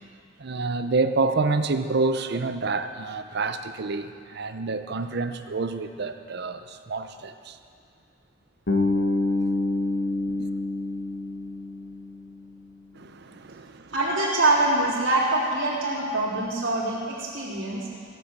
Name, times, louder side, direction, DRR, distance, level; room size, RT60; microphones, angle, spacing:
voice 1, 0.4-7.6 10.3-10.5 12.9-13.9, right 3 dB, 60° right, 9 dB, 0.7 m, -28 dB
Bass guitar, 8.7-12.6, left 2 dB, 75° left, 1.7 m, -27 dB
voice 2, 13.9-17.9, right 2 dB, 85° right, -6 dB, 3.7 m, -24 dB
17.0 x 7.9 x 7.3 m, 2.3 s
head